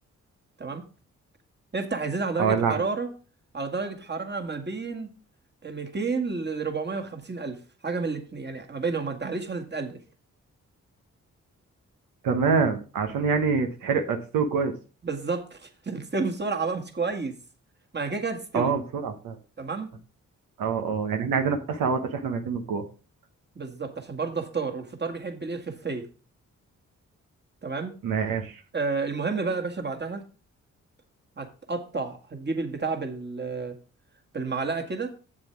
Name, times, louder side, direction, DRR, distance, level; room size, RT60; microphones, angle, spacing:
voice 1, 1.7-3.1 3.5-5.1 5.6-7.6 7.8-10.0 15.0-17.3 17.9-18.7 19.6-19.9 23.6-26.1 27.6-28.0 28.7-30.2 31.4-33.8 34.3-35.1, right 4 dB, 30° right, 5 dB, 1.9 m, -30 dB
voice 2, 2.4-2.8 12.2-14.7 18.5-19.4 20.6-22.8 28.0-28.6, right 5 dB, 85° right, 5 dB, 1.1 m, -25 dB
7.5 x 7.4 x 4.6 m, 0.35 s
supercardioid pair, 50°, 33 cm